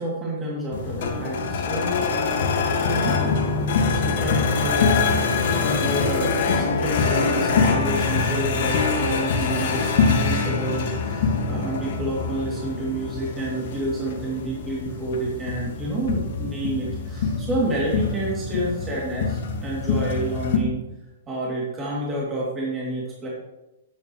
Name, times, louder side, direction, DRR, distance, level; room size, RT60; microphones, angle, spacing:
voice 1, 0.0-2.1 2.9-3.3 3.9-20.8 21.3-23.3, right 1 dB, 20° right, -5 dB, 2.6 m, -29 dB
sound 1, 0.7-20.6, left 4 dB, 60° left, 1.7 m, -24 dB
11.5 x 8.6 x 3.1 m, 0.97 s
hypercardioid pair, 125°, 0 cm